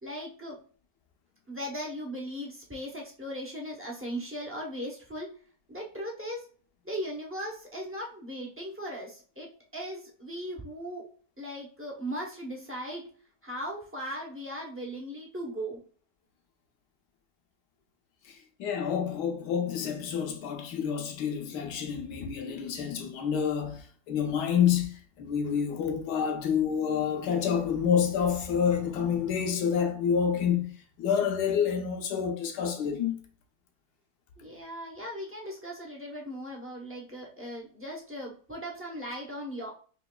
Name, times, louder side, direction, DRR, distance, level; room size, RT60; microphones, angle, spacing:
voice 1, 0.0-0.6 1.5-5.3 5.7-6.5 6.8-11.1 11.4-13.0 13.4-15.8 34.4-39.7, equal, 20° right, 0.3 m, -38 dB
voice 2, 18.2-30.7 31.0-33.2, left 7 dB, 85° left, 1.3 m, -28 dB
5.5 x 2.9 x 2.2 m
omnidirectional pair, 1.7 m